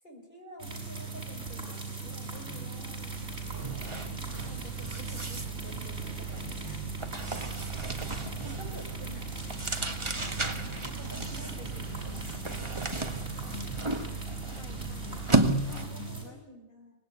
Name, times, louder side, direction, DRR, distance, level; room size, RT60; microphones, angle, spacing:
voice 1, 0.0-3.9 4.5-6.8 8.4-9.5 10.8-12.3 15.6-16.9, equal, 35° left, 1 dB, 7.8 m, -49 dB
sound 1, 0.6-16.2, right 4 dB, 50° right, 7.2 m, -39 dB
sound 2, 2.1-2.3 2.6-16.1, right 2 dB, 20° right, 1.6 m, -34 dB
voice 2, 10.0-10.5 13.3-13.7 14.5-15.3 15.6-16.4, left 6 dB, 80° left, 6 dB, 2.0 m, -51 dB
25.0 x 19.5 x 10.0 m, 0.89 s
omnidirectional pair, 1.4 m